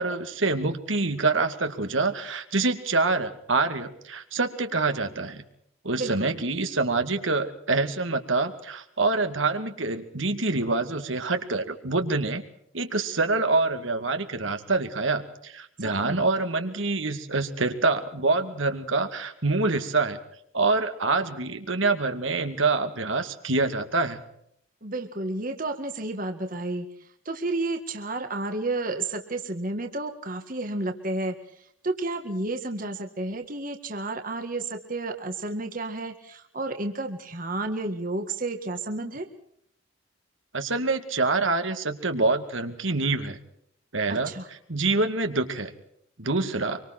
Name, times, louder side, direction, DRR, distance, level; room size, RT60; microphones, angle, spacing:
voice 1, 0.0-5.4 5.8-12.4 12.7-20.2 20.5-24.2 40.5-43.4 43.9-44.3 44.7-45.7 46.2-46.8, right 3 dB, 75° right, 7 dB, 2.4 m, -26 dB
voice 2, 6.0-6.3 15.8-16.2 24.8-39.3 44.1-44.5, right 2 dB, 45° right, 5 dB, 1.9 m, -31 dB
25.5 x 24.5 x 4.5 m, 0.70 s
head